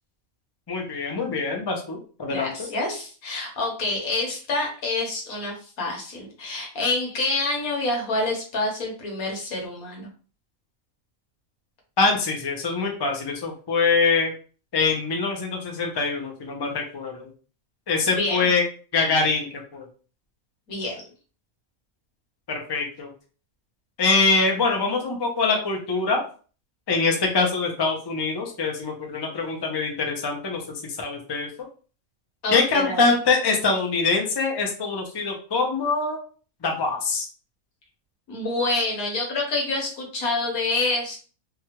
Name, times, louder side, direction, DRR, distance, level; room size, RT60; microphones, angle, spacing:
voice 1, 0.7-2.7 12.0-14.3 14.7-17.3 17.9-18.6 18.9-19.5 19.7-19.9 22.5-23.1 24.0-26.2 26.9-30.6 31.0-31.5 32.5-36.2 36.6-37.3, left 4 dB, 35° left, 1 dB, 0.4 m, -24 dB
voice 2, 2.3-10.1 18.1-18.5 20.7-21.1 32.4-33.0 38.3-41.2, left 2 dB, 80° left, 0 dB, 1.5 m, -27 dB
3.3 x 2.3 x 2.9 m, 0.39 s
omnidirectional pair, 1.5 m